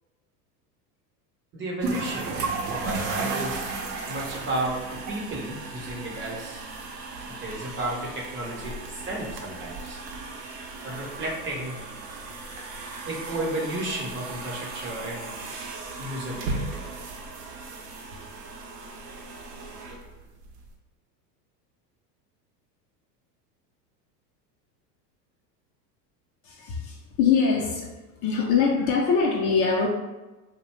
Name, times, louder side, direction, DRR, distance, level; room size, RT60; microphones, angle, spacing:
voice 1, 1.5-2.3 2.7-3.7 4.1-6.7 7.4-10.0 10.8-11.8 13.0-15.4 16.0-16.9, right 1 dB, 25° right, -2 dB, 0.6 m, -33 dB
sound 1, 1.8-20.7, right 3 dB, 75° right, 0.7 m, -35 dB
voice 2, 26.4-27.9 28.2-29.9, left 5 dB, 40° left, -1 dB, 0.4 m, -23 dB
2.6 x 2.1 x 3.0 m, 1.1 s
hypercardioid pair, 100°, 49 cm